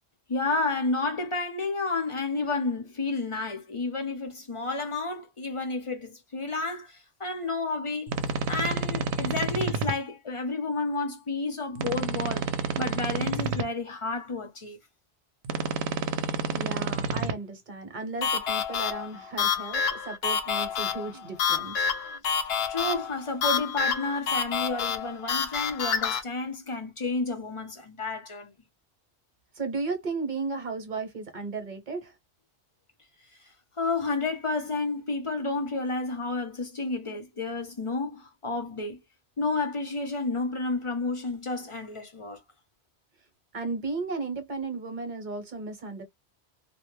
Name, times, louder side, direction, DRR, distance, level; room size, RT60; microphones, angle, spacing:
voice 1, 0.3-8.1 8.5-12.5 12.8-14.8 22.7-28.5 33.8-39.0 39.4-42.4, left 3 dB, 35° left, 0.5 m, -31 dB
sound 1, 8.1-9.9 11.8-13.6 15.4-17.3, right 5 dB, 75° right, 0.8 m, -29 dB
voice 2, 16.5-21.7 22.1-22.2 29.5-32.2 43.5-46.0, right 3 dB, 50° right, 0.9 m, -34 dB
sound 2, 18.2-26.2, left 7 dB, 65° left, 0.8 m, -28 dB
2.2 x 2.1 x 3.0 m
omnidirectional pair, 1.1 m